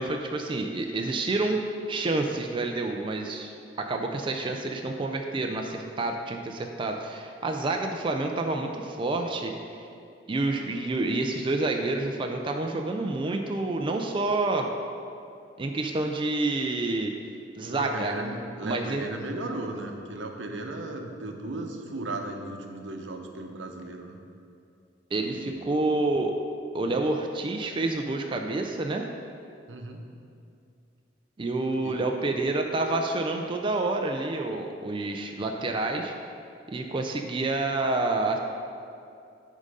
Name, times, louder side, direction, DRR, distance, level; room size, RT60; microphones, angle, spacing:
voice 1, 0.0-9.5 10.3-14.7 15.6-17.1 17.5-18.1 18.6-19.0 25.1-26.3 26.7-29.1 31.4-36.1 36.7-38.4, right 2 dB, 30° right, 3 dB, 0.4 m, -28 dB
voice 2, 17.6-24.2 25.2-25.6 26.8-27.0 29.7-30.0 31.8-32.0, right 2 dB, 85° right, 3 dB, 0.8 m, -36 dB
9.8 x 3.7 x 5.3 m, 2.5 s
head